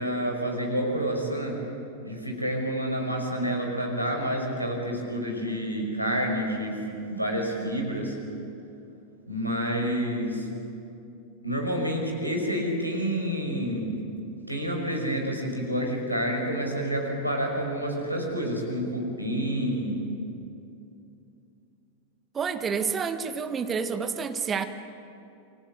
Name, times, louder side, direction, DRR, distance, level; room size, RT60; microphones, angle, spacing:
voice 1, 0.0-1.7 2.0-8.2 9.3-10.5 11.4-14.1 14.5-20.1, equal, 90° right, 1 dB, 5.6 m, -29 dB
voice 2, 22.3-24.6, right 6 dB, 20° right, 8 dB, 1.7 m, -29 dB
29.5 x 24.0 x 7.9 m, 2.7 s
figure-of-eight pair, 90°, 0 cm